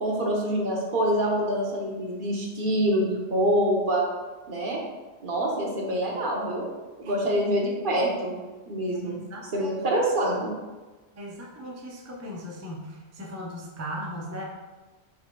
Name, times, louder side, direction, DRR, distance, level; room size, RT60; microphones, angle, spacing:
voice 1, 0.0-4.0 4.5-4.8 5.2-6.7 7.0-8.3 8.7-9.2 9.5-10.5, right 1 dB, 50° right, -2 dB, 1.0 m, -25 dB
voice 2, 8.9-9.7 11.1-14.4, equal, 25° right, -1 dB, 0.3 m, -38 dB
4.7 x 4.2 x 2.2 m, 1.2 s
omnidirectional pair, 1.2 m